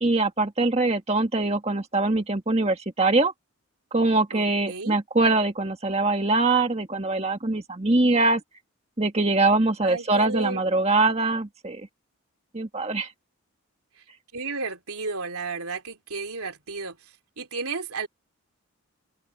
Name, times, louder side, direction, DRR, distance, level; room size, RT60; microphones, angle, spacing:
voice 1, 0.0-3.3 3.9-8.4 9.0-11.9 12.5-13.1, right 2 dB, 30° right, 1.7 m, -23 dB
voice 2, 4.3-5.0 9.8-10.6 14.3-18.1, right 4 dB, 80° right, 3.1 m, -33 dB
open air
head